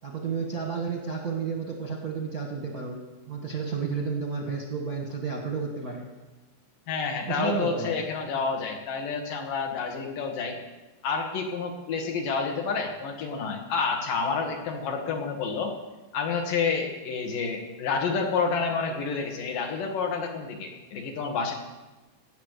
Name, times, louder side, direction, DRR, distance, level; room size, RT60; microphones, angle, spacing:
voice 1, 0.0-3.0 3.3-6.1 7.3-8.0, right 5 dB, 55° right, 0 dB, 1.0 m, -31 dB
voice 2, 6.9-10.6 11.0-15.7 16.1-21.5, left 5 dB, 75° left, 2 dB, 3.3 m, -29 dB
17.5 x 8.0 x 6.7 m, 1.1 s
omnidirectional pair, 3.9 m